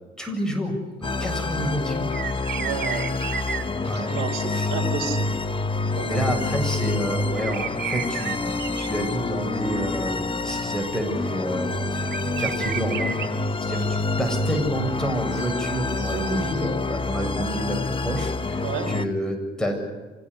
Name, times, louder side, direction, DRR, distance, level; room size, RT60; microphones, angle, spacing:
voice 1, 0.2-2.1 3.9-4.1 4.4-4.7 6.0-13.1 13.6-19.9, equal, 5° left, 2 dB, 7.5 m, -29 dB
sound 1, 1.0-19.1, left 3 dB, 25° left, 1.2 m, -27 dB
sound 2, 2.1-4.4 7.4-8.9 9.3-9.4 10.7-11.0 11.4-11.5 11.7-11.8 12.1-14.0 14.4-14.7 15.3-15.6 15.9-16.7, right 7 dB, 60° right, 2.1 m, -33 dB
voice 2, 2.5-3.3 4.0-5.3 6.0-6.2 16.1-16.6 17.2-17.5 18.6-18.9, right 6 dB, 90° right, 6 dB, 3.5 m, -31 dB
27.0 x 16.0 x 10.0 m, 1.2 s
cardioid pair, 90°, 20 cm